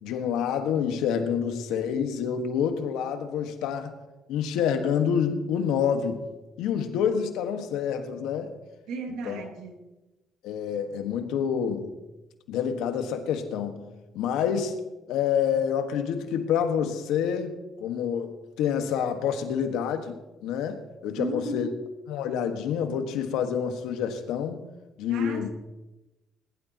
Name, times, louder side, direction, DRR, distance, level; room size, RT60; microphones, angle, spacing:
voice 1, 0.0-3.9 4.3-6.3 6.6-8.5 9.1-9.4 10.4-11.9 12.5-13.9 14.1-14.7 15.1-20.2 20.4-21.7 22.1-24.6 25.0-25.5, left 7 dB, 90° left, 1.6 m, -27 dB
voice 2, 8.9-9.9 21.2-21.7 25.1-25.5, right 2 dB, 85° right, 2.1 m, -35 dB
20.0 x 12.0 x 3.0 m
cardioid pair, 85°, 0 cm